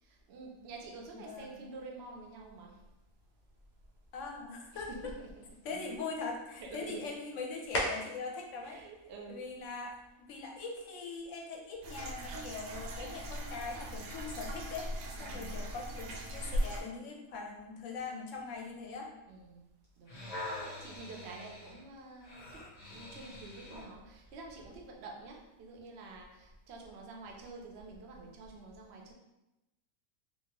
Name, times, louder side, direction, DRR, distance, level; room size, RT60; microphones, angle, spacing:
voice 1, 0.0-2.8 4.7-5.9 6.6-7.1 8.6-9.5 15.2-15.6 19.3-19.6 20.0-20.4 20.8-22.6 22.9-29.1, right 3 dB, 65° right, 0 dB, 0.7 m, -48 dB
voice 2, 1.1-1.7 4.1-4.9 5.6-8.8 9.3-9.9 10.3-14.9 15.2-19.1, left 4 dB, 70° left, 0 dB, 0.9 m, -41 dB
sound 1, 2.1-10.1, left 1 dB, 85° left, 0.4 m, -44 dB
sound 2, 11.8-16.8, equal, 80° right, 1.0 m, -39 dB
sound 3, 19.8-23.9 24.6-24.7, left 1 dB, 35° left, 0.7 m, -45 dB
2.7 x 2.5 x 2.9 m, 0.97 s
omnidirectional pair, 1.5 m